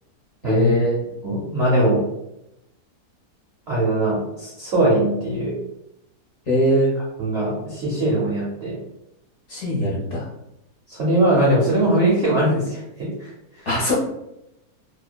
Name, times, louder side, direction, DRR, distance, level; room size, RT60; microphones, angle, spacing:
voice 1, 0.4-1.0 6.5-6.9 9.5-10.3 13.7-13.9, left 1 dB, 55° left, -7 dB, 1.0 m, -21 dB
voice 2, 1.2-2.0 3.7-5.5 7.2-8.8 10.9-13.3, right 1 dB, 55° right, -5 dB, 0.7 m, -21 dB
2.7 x 2.2 x 2.2 m, 0.85 s
omnidirectional pair, 1.8 m